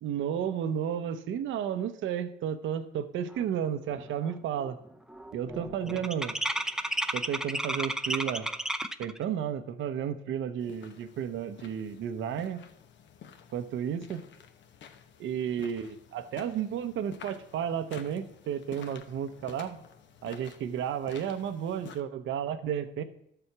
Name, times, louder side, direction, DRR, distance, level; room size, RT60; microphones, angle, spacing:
voice 1, 0.0-4.8 5.3-6.3 7.1-8.5 9.0-12.6 13.5-14.2 15.2-19.8 20.2-23.0, right 9 dB, 80° right, 10 dB, 0.8 m, -32 dB
sound 1, 3.9-4.3 4.5-9.2, right 1 dB, 5° right, 0.6 m, -33 dB
sound 2, 10.6-22.0, left 7 dB, 65° left, 1.0 m, -51 dB
12.0 x 6.9 x 4.7 m, 0.74 s
cardioid pair, 90°, 20 cm